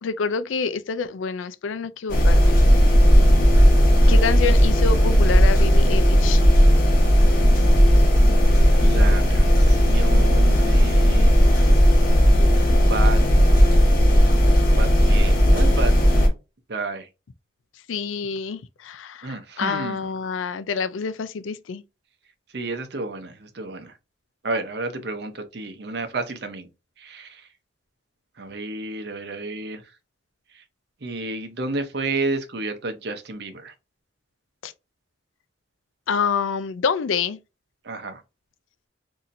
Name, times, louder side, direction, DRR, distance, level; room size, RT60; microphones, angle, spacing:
voice 1, 0.0-2.6 4.1-6.4 17.9-21.8 34.6-34.7 36.1-37.4, left 5 dB, 90° left, 0.4 m, -27 dB
sound 1, 2.1-16.3, equal, 50° left, 1.2 m, -15 dB
voice 2, 8.7-11.3 12.9-13.2 14.7-15.9 16.7-17.1 19.2-20.1 22.5-23.9 24.4-26.7 27.0-27.4 28.4-29.8 31.0-33.7 37.8-38.2, right 3 dB, 60° right, 0.7 m, -31 dB
4.1 x 2.8 x 2.5 m
head